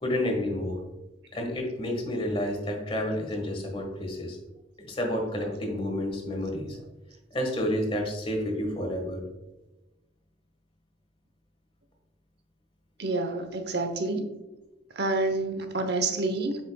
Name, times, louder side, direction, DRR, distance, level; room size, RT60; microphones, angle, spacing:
voice 1, 0.0-0.8 1.3-4.4 4.8-6.8 7.3-9.2, left 1 dB, 30° left, 2 dB, 1.5 m, -30 dB
voice 2, 13.0-14.3 15.0-16.6, right 2 dB, 60° right, 7 dB, 0.9 m, -28 dB
8.4 x 6.0 x 2.3 m, 1.0 s
head